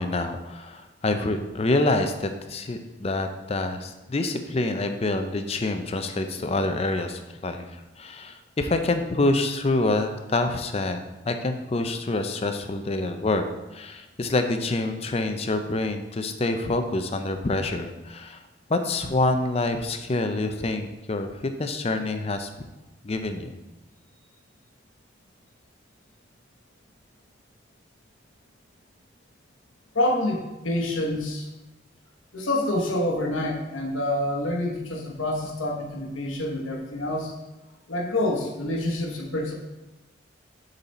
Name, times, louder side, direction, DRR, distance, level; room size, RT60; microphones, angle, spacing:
voice 1, 0.0-7.7 8.0-13.4 13.7-18.4 18.7-22.5 23.0-23.6, left 2 dB, 30° left, 7 dB, 0.4 m, -26 dB
voice 2, 29.9-31.5 32.3-37.3 37.9-39.5, left 1 dB, 85° left, 0 dB, 1.2 m, -27 dB
6.8 x 4.0 x 4.2 m, 1.0 s
head